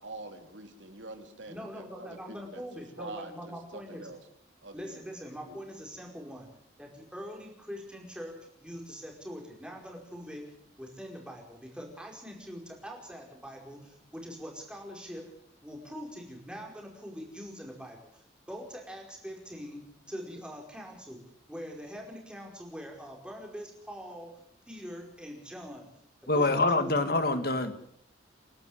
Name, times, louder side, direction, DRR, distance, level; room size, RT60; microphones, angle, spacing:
voice 1, 0.0-2.6 3.0-4.2 4.6-5.0 5.4-5.6, right 2 dB, 80° right, 6 dB, 3.1 m, -45 dB
voice 2, 1.5-4.1 4.7-6.5 6.8-15.2 15.6-24.3 24.7-25.9 26.3-26.9, equal, 5° right, 1 dB, 5.0 m, -43 dB
voice 3, 26.3-27.7, left 2 dB, 55° left, 9 dB, 1.9 m, -25 dB
29.5 x 12.0 x 8.0 m, 0.69 s
head